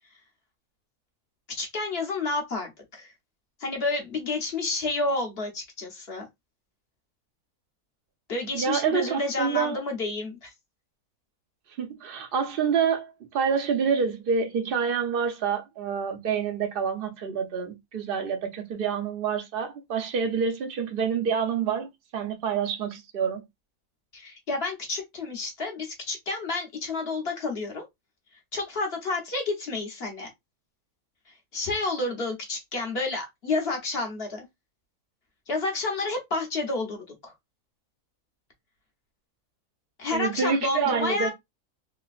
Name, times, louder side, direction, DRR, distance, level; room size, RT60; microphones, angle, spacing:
voice 1, 1.6-3.1 3.6-6.3 8.3-10.5 24.1-27.8 28.5-30.3 31.5-34.4 35.5-37.3 40.0-41.3, left 3 dB, 45° left, 1.1 m, -30 dB
voice 2, 8.5-9.8 11.8-23.4 40.1-41.3, right 6 dB, 50° right, 0.7 m, -27 dB
3.3 x 2.9 x 2.4 m
omnidirectional pair, 1.5 m